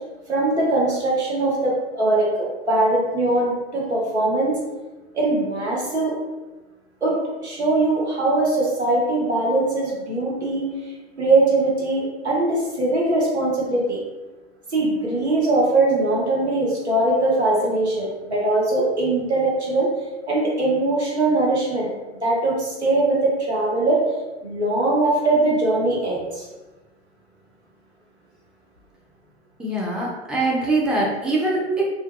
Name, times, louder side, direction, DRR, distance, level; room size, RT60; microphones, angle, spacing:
voice 1, 0.3-4.6 5.1-6.1 7.0-10.7 11.2-14.0 14.7-19.9 20.3-21.9 22.2-24.0 24.4-26.4, right 2 dB, 90° right, -4 dB, 0.8 m, -21 dB
voice 2, 29.6-31.8, right 2 dB, ahead, -5 dB, 0.5 m, -23 dB
2.5 x 2.2 x 2.5 m, 1.1 s
figure-of-eight pair, 80°, 32 cm